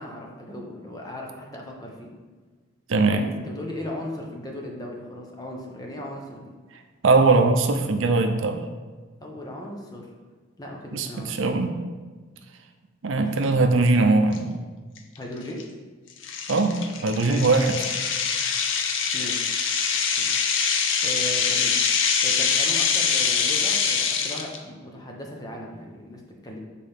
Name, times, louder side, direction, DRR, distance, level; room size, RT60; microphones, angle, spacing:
voice 1, 0.0-2.1 3.1-6.5 9.2-10.1 10.6-11.6 13.2-13.5 15.2-15.6 17.1-17.4 19.1-19.6 20.2-21.8 22.2-26.6, left 1 dB, 20° left, 0 dB, 0.8 m, -37 dB
voice 2, 2.9-3.2 7.0-8.6 10.9-11.7 13.0-14.5 16.5-17.8, right 3 dB, 75° right, 6 dB, 0.6 m, -20 dB
sound 1, 14.3-14.4 15.0-15.2 15.6-15.7 16.2-24.6, left 6 dB, 70° left, 0.6 m, -24 dB
7.6 x 4.2 x 3.5 m, 1.4 s
head